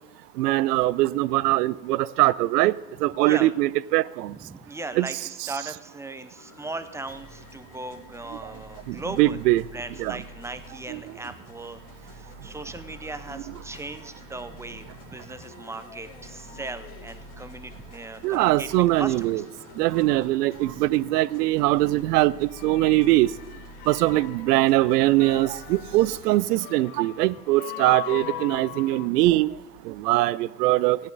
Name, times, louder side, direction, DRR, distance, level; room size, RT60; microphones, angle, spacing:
voice 1, 0.4-2.7 3.0-4.3 5.0-5.1 9.2-9.6 10.0-10.2 18.2-19.4 19.8-23.3 23.9-29.5 29.9-31.0, right 17 dB, 75° right, 0.5 m, -22 dB
voice 2, 3.2-3.5 4.3-9.4 9.7-19.5, right 2 dB, 5° right, 0.4 m, -38 dB
sound 1, 6.4-26.2, left 1 dB, 40° left, 2.3 m, -47 dB
sound 2, 22.5-29.1, left 13 dB, 60° left, 0.9 m, -40 dB
16.0 x 10.0 x 3.9 m
hypercardioid pair, 85°, 49 cm